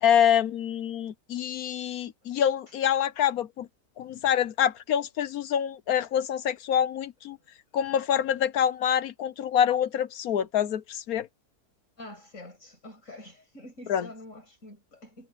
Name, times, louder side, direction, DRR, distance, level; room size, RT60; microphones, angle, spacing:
voice 1, 0.0-3.7 4.0-7.4 7.7-11.3 13.9-14.1, left 9 dB, 65° left, 1.3 m, -26 dB
voice 2, 12.0-15.3, left 1 dB, 50° left, 7.2 m, -46 dB
omnidirectional pair, 1.7 m